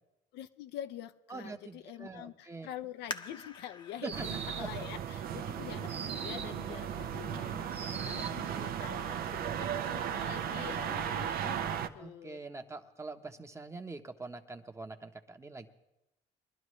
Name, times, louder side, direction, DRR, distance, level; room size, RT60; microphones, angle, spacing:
voice 1, 0.3-12.4, left 11 dB, 80° left, 10 dB, 0.7 m, -46 dB
voice 2, 1.3-2.7 4.0-4.2 4.6-4.7 12.0-15.7, right 3 dB, 15° right, 6 dB, 1.0 m, -44 dB
sound 1, 3.1-6.5 7.1-7.2 7.8-8.2 8.6-8.7, left 4 dB, 25° left, 0.8 m, -47 dB
sound 2, 4.0-4.8 5.9-6.6 7.7-8.5, right 5 dB, 35° right, 1.1 m, -42 dB
sound 3, 4.1-11.9, right 9 dB, 60° right, 0.7 m, -36 dB
22.0 x 11.5 x 3.2 m, 0.91 s
cardioid pair, 110°, 17 cm